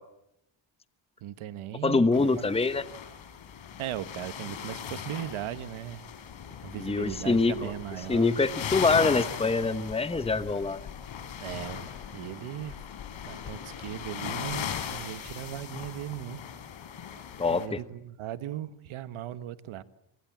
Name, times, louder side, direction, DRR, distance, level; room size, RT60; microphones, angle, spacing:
voice 1, 1.2-2.6 3.8-6.1 6.6-8.4 11.4-12.7 13.2-16.4 17.5-19.8, right 12 dB, 90° right, 1.5 m, -38 dB
voice 2, 1.8-2.9 6.8-7.7 8.1-10.8 17.4-17.8, left 3 dB, 10° left, 1.1 m, -25 dB
sound 1, 2.1-17.7, left 8 dB, 75° left, 4.5 m, -39 dB
26.0 x 25.5 x 7.5 m
cardioid pair, 110°, 47 cm